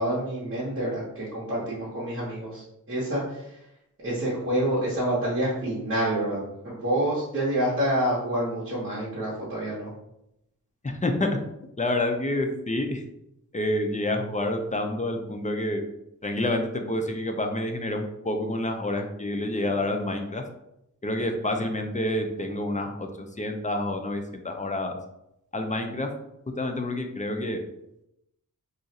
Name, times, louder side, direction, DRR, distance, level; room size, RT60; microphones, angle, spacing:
voice 1, 0.0-3.6 4.0-9.9, right 1 dB, 40° right, -9 dB, 1.0 m, -28 dB
voice 2, 10.8-11.4 11.8-13.0 13.5-15.9 16.2-20.4 21.0-25.0 25.5-26.1 26.6-27.6, left 1 dB, 25° left, 4 dB, 0.4 m, -28 dB
2.5 x 2.4 x 4.0 m, 0.82 s
wide cardioid pair, 70°, 33 cm